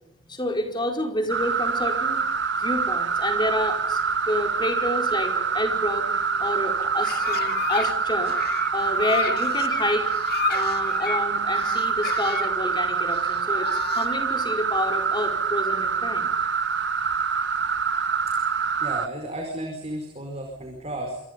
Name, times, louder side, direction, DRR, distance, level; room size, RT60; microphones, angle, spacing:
voice 1, 0.3-2.2 2.5-6.1 6.4-8.3 8.7-10.1 10.5-13.7 13.9-16.3, left 1 dB, 20° left, 3 dB, 4.9 m, -29 dB
sound 1, 1.3-19.1, right 5 dB, 55° right, 1.3 m, -25 dB
sound 2, 6.8-7.9 8.2-11.2 11.6-12.5 13.1-14.2, left 6 dB, 50° left, 2.2 m, -32 dB
voice 2, 18.8-21.2, right 1 dB, 30° right, 2 dB, 5.0 m, -33 dB
27.0 x 27.0 x 5.4 m, 0.80 s
head